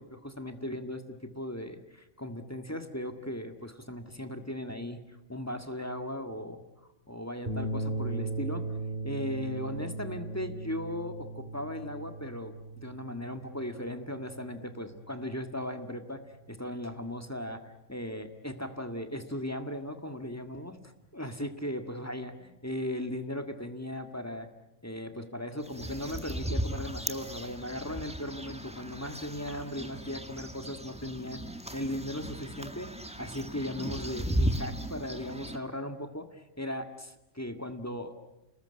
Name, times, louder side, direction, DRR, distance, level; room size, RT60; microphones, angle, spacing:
voice 1, 0.0-5.0 5.3-6.6 7.1-8.7 9.0-16.2 16.5-20.7 21.1-24.5 24.8-31.4 31.7-38.1, left 1 dB, 15° left, 7 dB, 1.8 m, -37 dB
sound 1, 7.5-15.9, right 2 dB, 40° right, 2.8 m, -38 dB
sound 2, 25.6-35.6, equal, 5° right, 1.8 m, -36 dB
29.5 x 20.0 x 9.9 m, 0.97 s
omnidirectional pair, 1.2 m